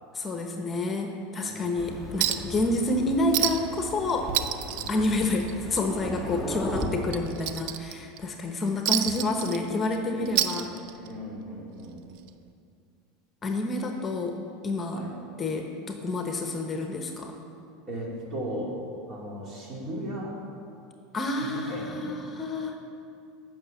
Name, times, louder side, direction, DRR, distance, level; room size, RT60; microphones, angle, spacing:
voice 1, 0.1-4.3 4.9-10.7 13.4-14.4 14.6-15.0 15.4-17.3 21.1-22.8, left 2 dB, 25° left, 4 dB, 1.0 m, -29 dB
voice 2, 1.4-1.9 4.7-5.1 10.1-12.1 14.9-15.2 17.9-18.8 19.1-20.4 21.4-22.1, equal, 40° right, -3 dB, 2.7 m, -37 dB
Thunder, 1.8-6.9, left 1 dB, 10° right, 1.5 m, -38 dB
Chink clink, 2.2-2.6 2.9-3.0 3.3-3.8 4.1-5.8 6.1-6.3 6.8-8.2 8.9-10.0 10.3-11.2 12.3-12.4, right 12 dB, 65° right, 0.5 m, -28 dB
8.4 x 6.1 x 7.3 m, 2.4 s
hypercardioid pair, 105°, 0 cm